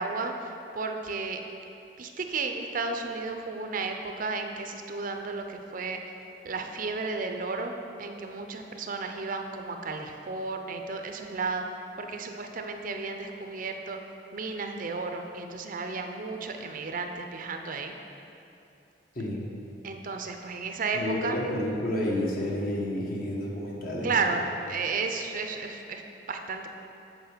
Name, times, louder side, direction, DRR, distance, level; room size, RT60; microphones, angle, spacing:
voice 1, 0.0-1.4 2.0-6.0 6.4-11.6 12.0-14.0 14.3-18.0 19.8-21.4 24.0-26.0 26.3-26.7, right 4 dB, 50° right, 5 dB, 0.6 m, -33 dB
voice 2, 19.1-19.5 20.9-24.2, left 1 dB, 55° left, -3 dB, 1.4 m, -30 dB
8.1 x 4.7 x 6.7 m, 2.8 s
head